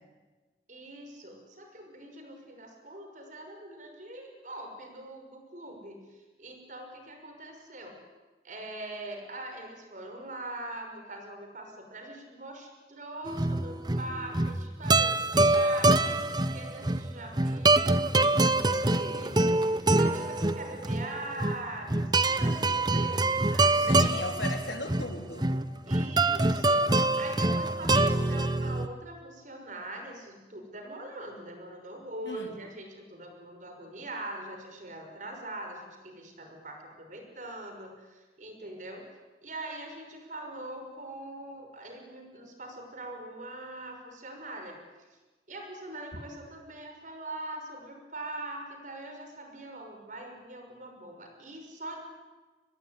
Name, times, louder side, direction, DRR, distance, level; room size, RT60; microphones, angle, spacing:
voice 1, 0.7-8.0 8.4-15.2 15.5-18.5 18.9-23.9 25.9-26.8 27.2-39.1 39.4-44.8 45.1-45.2 45.5-52.0, right 1 dB, 45° right, 4 dB, 5.9 m, -42 dB
sound 1, 13.3-28.9, right 2 dB, 25° right, 0.9 m, -25 dB
voice 2, 23.7-25.5 32.3-32.5, left 2 dB, 80° left, 4 dB, 3.6 m, -36 dB
24.5 x 21.0 x 9.9 m, 1.3 s
head